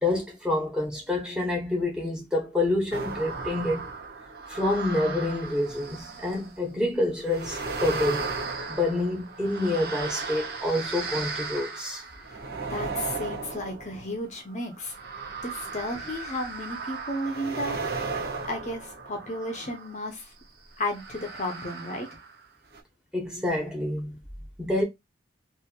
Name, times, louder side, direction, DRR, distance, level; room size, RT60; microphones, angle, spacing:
voice 1, 0.0-3.9 4.5-8.3 8.7-12.0 23.1-24.2 24.6-24.8, left 2 dB, 5° right, 1.0 m, -27 dB
sound 1, 2.9-6.6 7.2-20.0 20.8-22.4 22.7-22.8, right 4 dB, 55° right, 0.8 m, -36 dB
voice 2, 12.7-14.9 15.4-17.8 18.4-20.3 20.8-22.1, left 1 dB, 40° left, 0.7 m, -33 dB
3.0 x 2.7 x 2.3 m
head